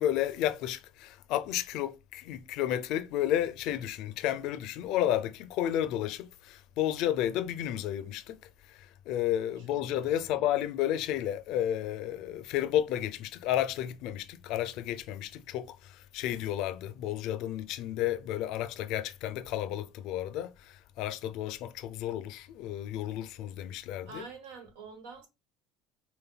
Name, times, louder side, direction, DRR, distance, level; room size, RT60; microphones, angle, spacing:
voice 1, 0.0-8.4 8.7-24.3, left 12 dB, 70° left, 0.4 m, -32 dB
voice 2, 9.6-10.5 24.1-25.3, right 4 dB, 85° right, 1.1 m, -48 dB
5.5 x 2.2 x 2.2 m
supercardioid pair, 100°, 0 cm